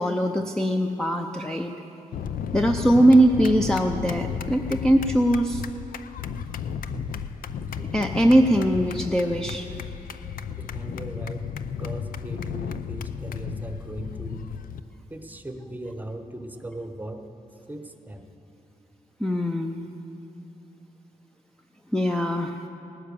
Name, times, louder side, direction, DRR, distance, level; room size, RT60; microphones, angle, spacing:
voice 1, 0.0-1.7 2.5-5.6 7.9-9.7 19.2-19.9 21.9-22.6, right 1 dB, 5° left, 4 dB, 0.5 m, -21 dB
sound 1, 2.1-14.8, left 7 dB, 80° left, 0.5 m, -33 dB
voice 2, 6.9-7.2 7.8-7.9 10.6-11.4 11.8-14.4 15.1-17.2 17.7-18.3, right 1 dB, 10° right, 6 dB, 0.9 m, -38 dB
18.0 x 9.9 x 6.9 m, 2.9 s
wide cardioid pair, 145°, 14 cm